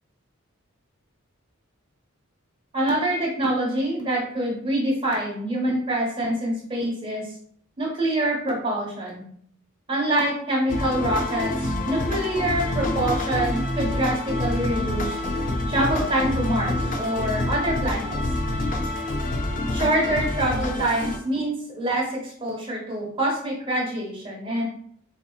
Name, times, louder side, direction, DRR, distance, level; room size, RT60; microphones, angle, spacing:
voice 1, 2.7-7.2 7.8-9.2 9.9-15.2 15.7-18.2 19.7-24.6, right 1 dB, 25° right, -3 dB, 1.1 m, -25 dB
sound 1, 10.7-21.2, left 1 dB, 40° left, 0.5 m, -27 dB
4.3 x 2.8 x 2.3 m, 0.63 s
head